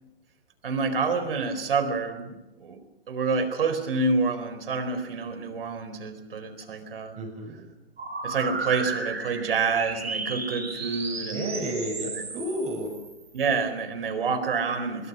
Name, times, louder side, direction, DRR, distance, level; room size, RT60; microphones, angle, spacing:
voice 1, 0.6-2.8 3.1-7.2 8.2-11.6 13.3-15.1, right 4 dB, 65° right, 10 dB, 4.4 m, -28 dB
voice 2, 7.2-7.6 11.3-12.9, right 1 dB, 20° right, 3 dB, 6.8 m, -32 dB
sound 1, 8.0-13.5, right 4 dB, 80° right, 8.0 m, -34 dB
24.5 x 22.5 x 6.3 m, 0.99 s
figure-of-eight pair, 120°, 31 cm